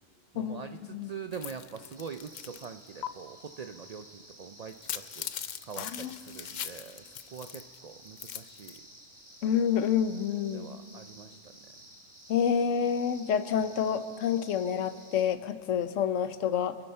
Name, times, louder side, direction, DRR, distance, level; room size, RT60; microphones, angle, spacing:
voice 1, 0.3-5.3 5.6-8.8 10.5-11.5, right 6 dB, 75° right, 8 dB, 0.3 m, -44 dB
sound 1, 1.3-2.7 3.0-3.1 4.7-7.8 8.1-8.8, left 9 dB, 60° left, 0.5 m, -40 dB
sound 2, 1.9-15.2, right 1 dB, 15° right, 1.7 m, -54 dB
voice 2, 5.8-6.2 9.4-10.7 12.3-16.8, left 8 dB, 80° left, 12 dB, 1.0 m, -28 dB
25.5 x 11.0 x 4.3 m, 2.1 s
omnidirectional pair, 1.3 m